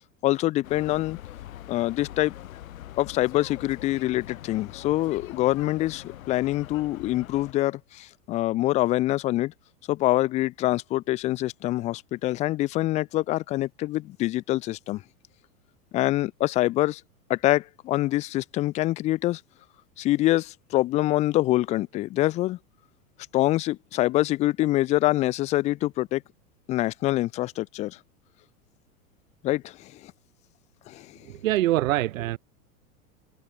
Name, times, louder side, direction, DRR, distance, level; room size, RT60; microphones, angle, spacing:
voice 1, 0.2-1.2 1.7-2.3 3.0-9.5 9.9-15.0 15.9-17.0 17.3-19.4 20.0-22.6 23.3-26.2 26.7-28.0 29.4-30.1 30.9-31.1, left 16 dB, 15° left, 0.4 m, -25 dB
sound 1, 0.6-7.5, left 13 dB, 65° left, 4.3 m, -43 dB
voice 2, 31.2-32.4, right 15 dB, 60° right, 1.0 m, -24 dB
figure-of-eight pair, 95°, 44 cm